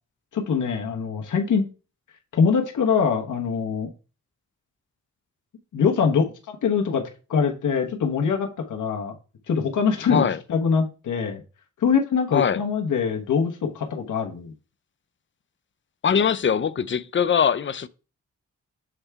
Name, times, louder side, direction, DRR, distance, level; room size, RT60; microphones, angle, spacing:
voice 1, 0.3-1.7 2.3-3.9 5.7-7.0 7.3-9.1 9.5-11.4 11.8-14.5, left 6 dB, 85° left, 1.1 m, -23 dB
voice 2, 10.1-10.4 12.3-12.6 16.0-17.9, left 7 dB, 40° left, 0.5 m, -22 dB
7.2 x 3.3 x 4.6 m
cardioid pair, 80°, 30 cm